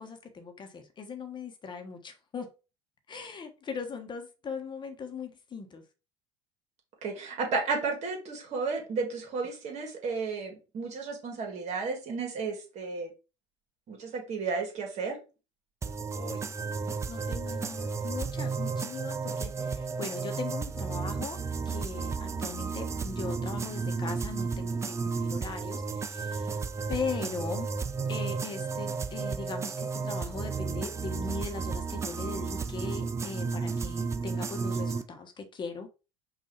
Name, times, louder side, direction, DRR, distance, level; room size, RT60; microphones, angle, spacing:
voice 1, 0.0-2.5 3.1-5.8 16.1-21.4 21.6-27.7 28.1-35.9, left 5 dB, 30° left, 1.1 m, -39 dB
voice 2, 7.0-13.1 13.9-15.2, right 4 dB, 45° right, 1.9 m, -33 dB
sound 1, 15.8-35.0, right 5 dB, 20° right, 0.4 m, -33 dB
5.3 x 2.7 x 3.2 m
hypercardioid pair, 75°, 16 cm